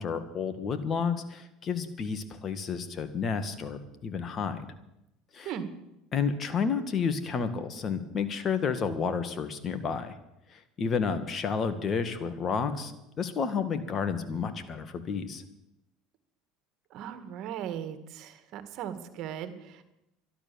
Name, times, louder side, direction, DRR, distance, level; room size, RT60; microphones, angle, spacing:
voice 1, 0.0-4.7 5.3-5.5 6.1-10.2 10.5-15.4, left 6 dB, 40° left, 10 dB, 1.8 m, -31 dB
voice 2, 16.9-19.8, right 9 dB, 60° right, 10 dB, 1.9 m, -38 dB
12.5 x 12.0 x 7.0 m, 0.88 s
supercardioid pair, 95°, 0 cm